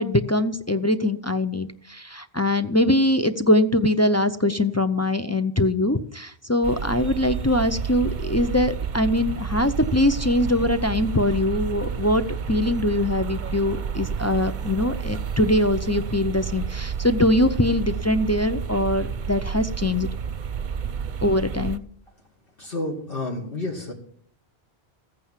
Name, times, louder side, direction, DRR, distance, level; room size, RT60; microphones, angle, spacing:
voice 1, 0.0-20.1 21.2-21.8, left 1 dB, 20° left, 8 dB, 0.5 m, -22 dB
sound 1, 6.6-21.8, right 7 dB, 50° right, 0.8 m, -30 dB
voice 2, 22.6-23.9, left 2 dB, 55° left, -1 dB, 2.1 m, -30 dB
15.0 x 8.9 x 7.4 m, 0.63 s
omnidirectional pair, 1.1 m